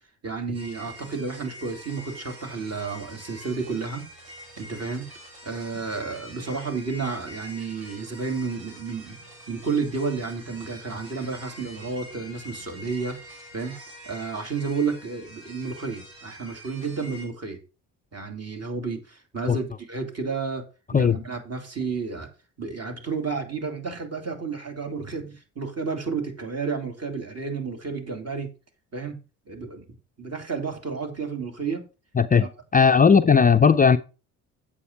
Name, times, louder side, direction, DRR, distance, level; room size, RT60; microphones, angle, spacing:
voice 1, 0.2-4.0 4.6-5.1 5.4-9.2 9.5-13.7 14.0-17.6 18.1-20.6 20.9-22.3 22.6-28.5 28.9-29.2 29.5-29.8 30.2-31.8 32.4-32.5, right 4 dB, 35° right, 3.0 m, -31 dB
sound 1, 0.5-17.3, equal, 70° right, 4.7 m, -45 dB
voice 2, 32.2-32.5 32.7-34.0, left 6 dB, 20° left, 0.5 m, -17 dB
8.3 x 7.4 x 4.5 m
hypercardioid pair, 55°, 44 cm